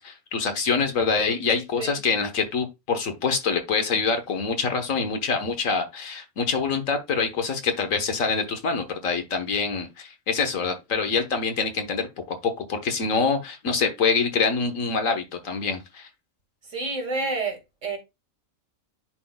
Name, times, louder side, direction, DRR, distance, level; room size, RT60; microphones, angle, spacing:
voice 1, 0.0-16.1, left 5 dB, 80° left, 1.6 m, -25 dB
voice 2, 16.6-18.0, right 3 dB, 65° right, 2.3 m, -29 dB
10.5 x 4.0 x 2.2 m
omnidirectional pair, 1.4 m